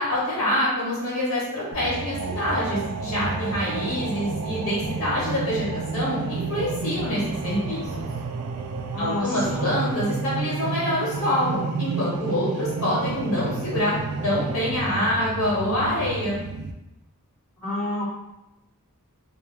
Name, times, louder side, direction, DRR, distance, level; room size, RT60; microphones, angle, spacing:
voice 1, 0.0-7.8 9.0-13.9 14.2-16.4, left 1 dB, 70° left, -7 dB, 1.1 m, -26 dB
sound 1, 1.7-16.7, right 4 dB, 70° right, 0.3 m, -30 dB
voice 2, 8.9-9.8 17.6-18.0, left 1 dB, 5° left, -12 dB, 1.2 m, -29 dB
2.2 x 2.2 x 3.1 m, 0.93 s
head